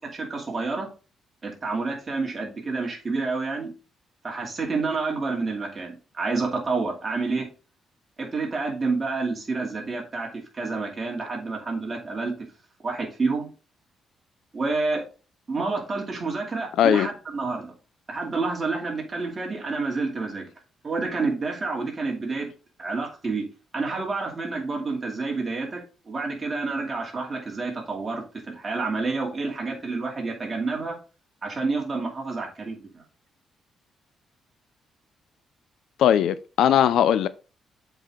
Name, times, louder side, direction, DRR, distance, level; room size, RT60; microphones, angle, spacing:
voice 1, 0.1-0.9 1.4-3.7 4.2-7.5 8.2-10.3 10.5-12.3 12.8-13.5 14.5-15.0 15.5-17.7 18.1-20.4 20.8-22.5 22.8-23.4 23.7-31.0 31.4-33.0, right 3 dB, 25° right, 2.5 m, -29 dB
voice 2, 16.8-17.1 36.0-37.3, left 10 dB, 80° left, 0.5 m, -19 dB
7.5 x 4.9 x 3.6 m
cardioid pair, 155°, 0 cm